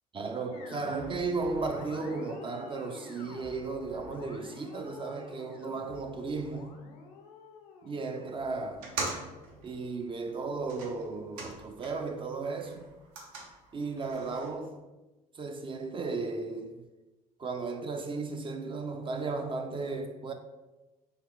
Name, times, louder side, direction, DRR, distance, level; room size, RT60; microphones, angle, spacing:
voice 1, 0.1-6.8 7.8-8.9 9.6-12.9 13.7-14.8 15.3-16.9 17.4-20.3, right 3 dB, 25° right, 0.4 m, -35 dB
sound 1, 0.5-9.8, left 3 dB, 75° left, 0.5 m, -49 dB
sound 2, 8.7-12.2 12.5-14.5, right 3 dB, 70° right, 0.7 m, -42 dB
3.5 x 2.2 x 3.5 m
figure-of-eight pair, 55°, 20 cm